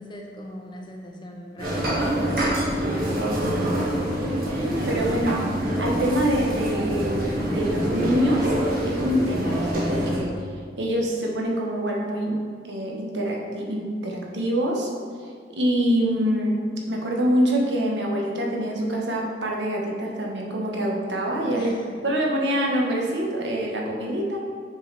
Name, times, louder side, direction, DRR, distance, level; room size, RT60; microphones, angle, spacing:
voice 1, 0.0-2.0 4.7-4.8 5.1-5.8 21.5-22.2, equal, 25° left, 0 dB, 0.7 m, -41 dB
sound 1, 1.6-10.2, right 1 dB, 55° right, 1.5 m, -25 dB
voice 2, 3.1-3.8 4.5-5.4 5.8-8.5 8.9-10.3 10.8-12.3 12.6-14.9 15.6-21.8 22.0-24.4, equal, 85° right, -1 dB, 1.1 m, -25 dB
6.6 x 4.7 x 4.6 m, 2.1 s
head